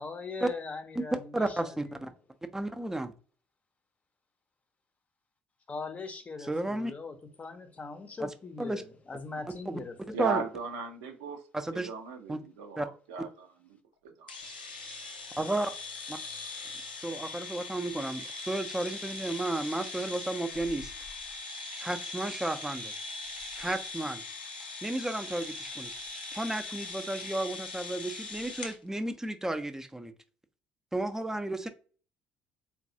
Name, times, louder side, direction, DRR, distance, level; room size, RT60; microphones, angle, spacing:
voice 1, 0.0-1.9 5.7-10.0, left 4 dB, 30° left, 0.6 m, -41 dB
voice 2, 1.3-2.1 2.5-3.1 6.5-6.9 8.2-8.3 8.6-8.8 9.7-9.8 10.2-10.4 11.5-11.9 12.3-12.4 12.8-12.9 15.4-15.7 16.1-16.2 17.0-20.9 21.8-22.9 23.6-24.2 24.8-25.9 26.3-30.1 30.9-31.7, right 1 dB, 10° right, 0.5 m, -33 dB
voice 3, 10.1-11.4 11.7-13.5 14.0-14.3, right 5 dB, 75° right, 0.6 m, -36 dB
sound 1, 14.3-28.8, left 3 dB, 90° left, 0.4 m, -41 dB
3.9 x 2.2 x 2.7 m
figure-of-eight pair, 55°, 5 cm